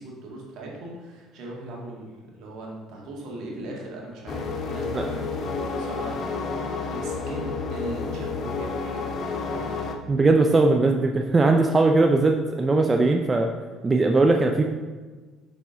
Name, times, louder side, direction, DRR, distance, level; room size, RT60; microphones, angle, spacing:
voice 1, 0.0-2.1 2.4-6.5 6.9-9.8, right 2 dB, 65° right, -2 dB, 1.9 m, -39 dB
sound 1, 4.3-10.0, left 4 dB, 55° left, 0.8 m, -30 dB
voice 2, 10.1-13.5 13.8-14.6, right 3 dB, 25° right, 3 dB, 0.5 m, -19 dB
6.7 x 4.9 x 3.9 m, 1.4 s
hypercardioid pair, 65°, 0 cm